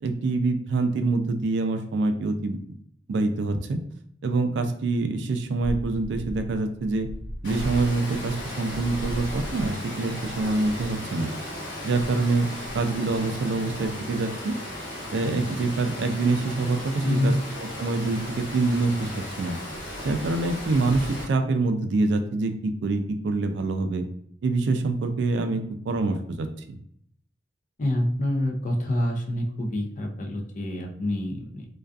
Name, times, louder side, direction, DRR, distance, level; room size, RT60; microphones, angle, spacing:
voice 1, 0.0-2.6 3.1-3.8 4.2-7.1 7.4-11.3 11.8-12.5 12.7-14.5 15.1-19.1 19.4-19.6 20.0-24.1 24.4-25.6 25.9-26.5, right 3 dB, 70° right, 7 dB, 0.3 m, -25 dB
sound 1, 5.6-11.0 11.9-13.9 16.2-16.9 17.7-18.5 18.9-19.3, equal, 60° left, 0.8 m, -38 dB
Water, 7.4-21.2, equal, 80° left, 1.1 m, -36 dB
voice 2, 17.0-17.4 27.8-31.7, left 1 dB, 45° left, 2 dB, 0.4 m, -26 dB
2.5 x 2.2 x 2.3 m, 0.65 s
head